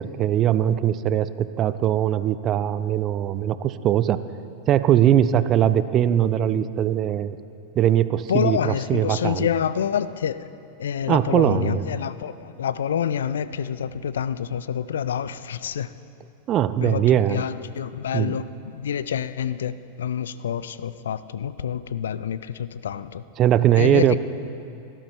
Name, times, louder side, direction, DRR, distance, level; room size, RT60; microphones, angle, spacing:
voice 1, 0.0-4.2 4.7-7.4 7.8-9.5 11.1-11.8 16.5-17.5 18.1-18.4 23.4-24.2, right 10 dB, 30° right, 14 dB, 0.4 m, -21 dB
voice 2, 8.3-10.5 10.8-15.9 16.8-23.2 23.8-24.2, left 8 dB, 65° left, 16 dB, 0.4 m, -27 dB
17.5 x 11.5 x 4.5 m, 2.6 s
figure-of-eight pair, 90°, 0 cm